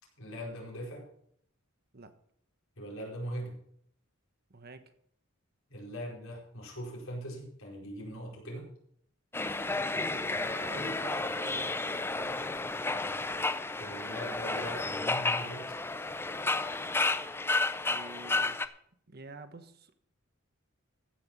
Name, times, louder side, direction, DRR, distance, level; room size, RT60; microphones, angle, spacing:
voice 1, 0.2-1.1 2.8-3.5 5.7-8.7 13.8-15.6, equal, 85° left, -2 dB, 4.8 m, -40 dB
voice 2, 4.5-4.9 9.7-12.4 17.7-18.6 19.1-19.9, right 3 dB, 50° right, 9 dB, 1.2 m, -48 dB
sound 1, 9.3-18.7, left 3 dB, 10° left, 0.5 m, -32 dB
15.0 x 5.9 x 7.3 m, 0.66 s
head